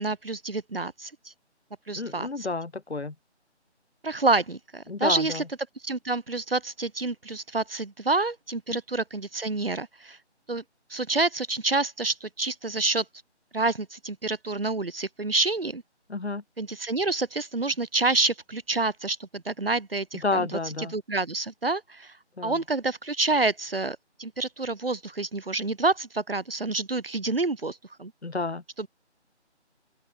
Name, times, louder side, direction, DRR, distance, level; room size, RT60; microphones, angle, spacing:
voice 1, 0.0-1.3 1.9-2.5 4.0-5.4 5.8-10.2 10.5-10.6 10.9-13.0 13.5-15.8 16.6-22.2 22.4-28.1 28.8-28.9, right 3 dB, 55° right, 4.5 m, -28 dB
voice 2, 2.0-3.1 4.9-5.4 16.1-16.4 20.2-20.9 22.4-22.6 28.2-28.6, left 3 dB, 65° left, 2.7 m, -30 dB
open air
figure-of-eight pair, 180°, 35 cm